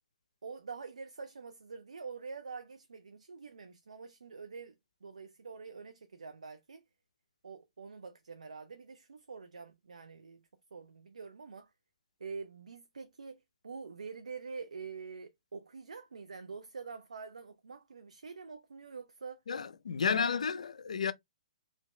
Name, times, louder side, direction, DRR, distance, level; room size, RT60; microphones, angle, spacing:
voice 1, 0.4-6.8 7.4-10.4 10.7-11.7 12.2-19.4 20.1-20.4, right 5 dB, 90° right, 0.5 m, -46 dB
voice 2, 19.5-21.1, left 6 dB, 80° left, 0.5 m, -32 dB
3.1 x 2.6 x 3.1 m
hypercardioid pair, 135°, 4 cm